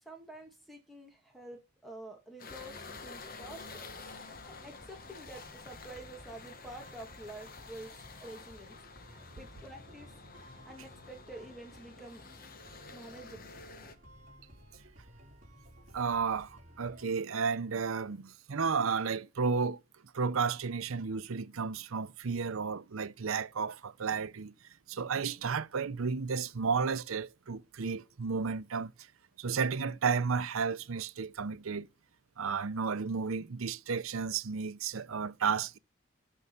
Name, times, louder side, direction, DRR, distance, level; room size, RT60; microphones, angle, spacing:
voice 1, 0.0-3.8 4.5-8.7 9.4-10.1 10.6-12.2 12.9-13.5, right 1 dB, ahead, 2.3 m, -48 dB
sound 1, 2.4-14.0, left 4 dB, 45° left, 1.0 m, -50 dB
sound 2, 2.5-17.0, equal, 40° right, 4.2 m, -56 dB
voice 2, 15.9-19.8 20.1-24.5 24.9-28.9 29.4-31.9 32.4-35.8, right 5 dB, 80° right, 0.7 m, -32 dB
12.5 x 5.5 x 7.1 m
head